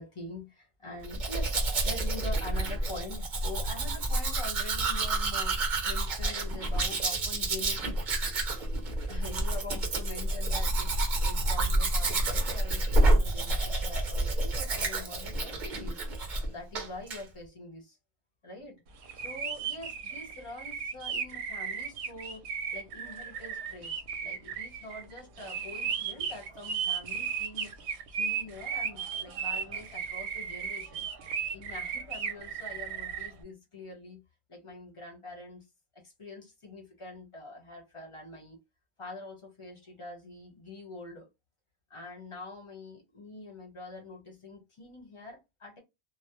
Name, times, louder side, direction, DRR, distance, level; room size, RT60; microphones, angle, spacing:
voice 1, 0.0-8.0 9.1-16.0 16.4-18.0 18.4-18.8 19.1-27.7 28.1-31.1 31.5-34.2 34.5-35.7 35.9-38.6 39.0-41.3 41.9-45.8, left 2 dB, 30° left, 0.9 m, -45 dB
Domestic sounds home sounds, 1.0-16.5 16.7-17.2, right 2 dB, 50° right, 0.8 m, -29 dB
sound 1, 19.0-33.3, right 7 dB, 80° right, 0.8 m, -35 dB
2.1 x 2.0 x 2.9 m
omnidirectional pair, 1.1 m